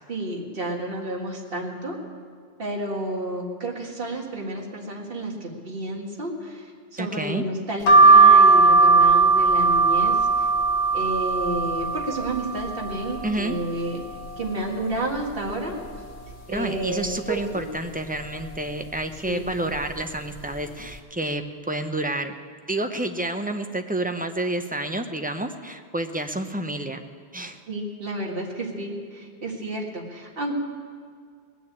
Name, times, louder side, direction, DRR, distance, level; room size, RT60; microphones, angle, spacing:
voice 1, 0.1-2.0 2.6-10.5 10.9-14.0 14.4-15.8 16.5-17.7 19.2-19.5 27.7-30.5, right 1 dB, 60° right, 0 dB, 2.1 m, -31 dB
voice 2, 7.0-7.4 13.2-13.6 16.5-22.3 22.7-27.0 27.3-27.6, right 1 dB, 10° right, 6 dB, 0.6 m, -29 dB
sound 1, 7.9-13.5 14.0-14.8 15.2-15.3 15.4-16.6 17.0-17.4 18.2-18.5 19.3-19.5 19.8-20.0, right 3 dB, 90° left, 1.8 m, -18 dB
19.5 x 6.9 x 8.7 m, 2.1 s
omnidirectional pair, 1.1 m